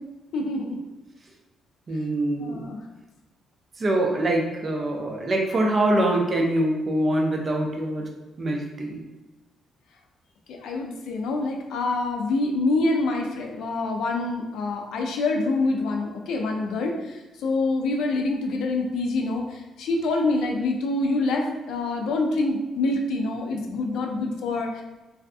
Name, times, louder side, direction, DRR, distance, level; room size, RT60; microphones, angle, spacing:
voice 1, 0.3-0.8 2.4-2.8 10.5-24.8, left 2 dB, 80° left, 2 dB, 0.4 m, -26 dB
voice 2, 1.9-2.7 3.8-8.1 8.4-9.0, right 1 dB, 30° right, 0 dB, 0.4 m, -24 dB
2.5 x 2.4 x 2.3 m, 1.1 s
cardioid pair, 160°, 0 cm